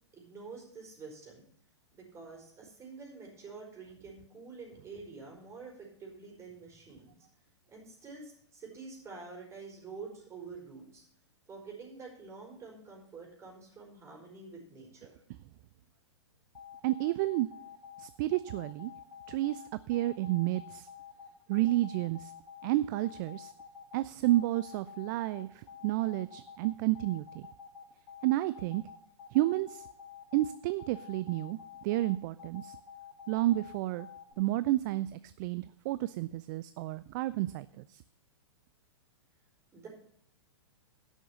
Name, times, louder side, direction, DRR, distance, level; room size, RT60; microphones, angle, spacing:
voice 1, 0.1-1.5 1.9-7.1 7.7-11.0 11.5-15.1 39.7-39.9, right 4 dB, 20° right, 0 dB, 4.7 m, -48 dB
sound 1, 16.5-34.3, left 8 dB, 50° left, 4.8 m, -49 dB
voice 2, 16.8-17.5 18.0-18.9 19.3-20.9 21.5-22.3 22.6-23.5 23.9-27.5 28.2-28.8 29.3-29.9 30.3-32.8 33.3-34.1 34.4-38.0, right 16 dB, 40° right, 15 dB, 0.4 m, -31 dB
11.5 x 6.4 x 7.0 m, 0.65 s
hypercardioid pair, 110°, 15 cm